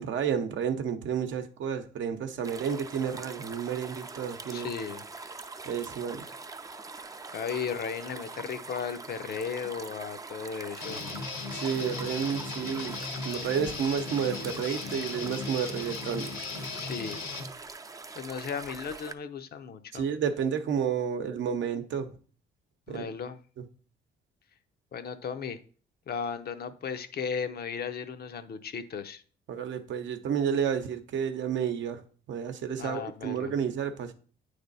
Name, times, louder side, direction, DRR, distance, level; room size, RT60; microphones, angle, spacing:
voice 1, 0.0-4.7 5.7-6.2 11.5-13.0 13.2-16.3 19.9-22.1 22.9-23.1 29.5-32.0 32.3-34.1, right 7 dB, 70° right, 0.7 m, -31 dB
sound 1, 2.4-19.1, right 3 dB, 15° right, 0.4 m, -43 dB
voice 2, 4.5-5.0 7.3-11.0 16.8-17.2 18.1-20.1 22.9-23.4 24.9-25.6 26.1-29.2 32.8-33.5, left 6 dB, 50° left, 0.6 m, -35 dB
Guitar, 10.8-17.5, left 4 dB, 80° left, 1.3 m, -37 dB
8.8 x 3.4 x 4.0 m
cardioid pair, 90°, 20 cm